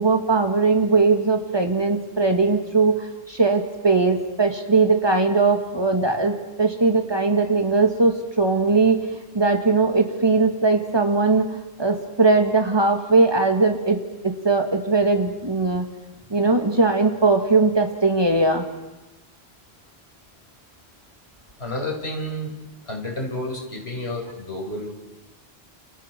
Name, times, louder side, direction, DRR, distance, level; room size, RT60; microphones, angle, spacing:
voice 1, 0.0-9.0 9.3-14.0 14.2-15.9 16.3-18.7, right 3 dB, 25° right, 4 dB, 2.2 m, -20 dB
voice 2, 21.6-22.6 22.8-24.9, left 1 dB, 80° left, 0 dB, 5.6 m, -30 dB
29.5 x 29.0 x 4.7 m, 1.0 s
omnidirectional pair, 1.1 m